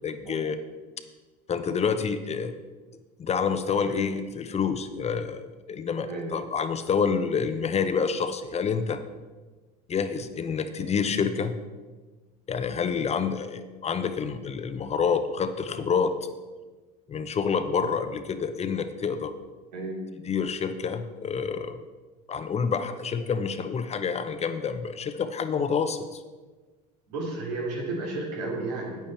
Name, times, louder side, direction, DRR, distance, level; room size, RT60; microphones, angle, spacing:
voice 1, 0.0-0.6 1.5-2.5 3.2-5.4 5.7-9.0 9.9-11.6 12.5-16.1 17.1-19.4 20.2-21.8 22.3-26.2, left 6 dB, 30° left, 10 dB, 0.8 m, -28 dB
voice 2, 27.1-29.1, right 2 dB, 85° right, -2 dB, 2.8 m, -32 dB
9.2 x 8.8 x 4.5 m, 1.3 s
hypercardioid pair, 80°, 21 cm